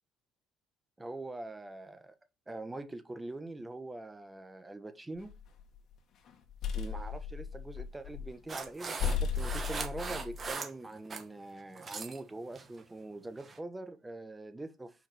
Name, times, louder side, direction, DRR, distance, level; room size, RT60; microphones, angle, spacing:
voice 1, 1.0-2.1 2.5-5.3 6.7-15.1, right 2 dB, 10° right, 1.2 m, -43 dB
sound 1, 5.2-5.8 6.3-8.4 8.7-8.8 9.0-10.5, left 6 dB, 55° left, 1.8 m, -35 dB
sound 2, 8.5-11.3 11.6-12.2 12.5-12.8 13.4-13.6, right 4 dB, 30° right, 1.7 m, -40 dB
5.8 x 4.8 x 6.0 m
cardioid pair, 110°, 0 cm